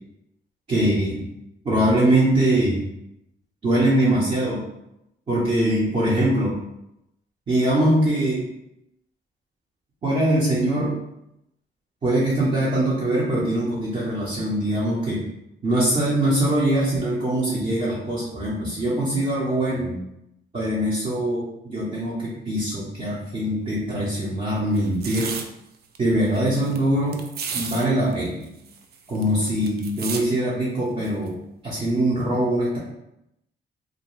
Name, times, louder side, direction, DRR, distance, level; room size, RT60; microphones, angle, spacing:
voice 1, 0.7-1.3 1.6-2.8 3.6-4.6 5.3-6.5 7.5-8.4 10.0-10.9 12.0-15.3 15.6-20.0 20.5-25.3 26.0-27.2 27.5-28.5 29.1-31.3 31.6-32.8, right 1 dB, 35° right, -8 dB, 0.9 m, -22 dB
sound 1, 24.7-25.4 25.9-26.0 26.2-26.8 27.1-27.8 28.1-28.2 28.4-30.2 31.0-31.3, right 6 dB, 55° right, 0.4 m, -33 dB
2.5 x 2.2 x 3.1 m, 0.85 s
cardioid pair, 90°, 20 cm